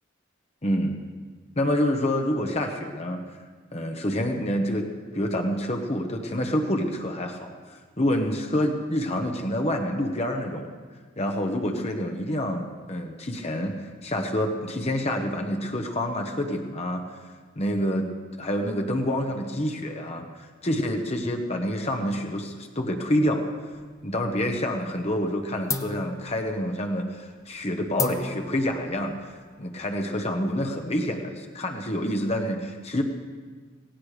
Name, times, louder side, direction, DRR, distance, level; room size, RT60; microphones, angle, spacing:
voice 1, 0.6-1.0 1.6-3.2 3.7-10.7 11.2-17.0 17.6-18.1 18.4-23.5 24.0-29.3 29.6-33.0, equal, 35° left, 3 dB, 1.1 m, -27 dB
sound 1, 23.7-24.6 24.9-25.3 25.7-30.8, left 4 dB, 15° left, 0.7 m, -36 dB
17.5 x 16.5 x 5.0 m, 1.5 s
head